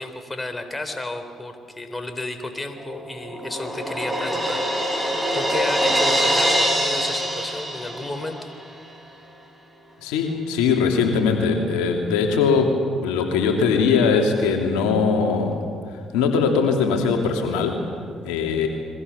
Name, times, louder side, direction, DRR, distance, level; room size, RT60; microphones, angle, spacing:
voice 1, 0.0-4.6 5.3-8.5, left 2 dB, 20° left, 7 dB, 3.7 m, -32 dB
Crash cymbal, 2.8-8.5, equal, 10° right, 7.3 m, -24 dB
voice 2, 10.0-15.6 16.1-17.8 18.2-18.7, left 5 dB, 80° left, 3 dB, 2.8 m, -21 dB
29.5 x 22.5 x 7.1 m, 2.3 s
hypercardioid pair, 55°, 0 cm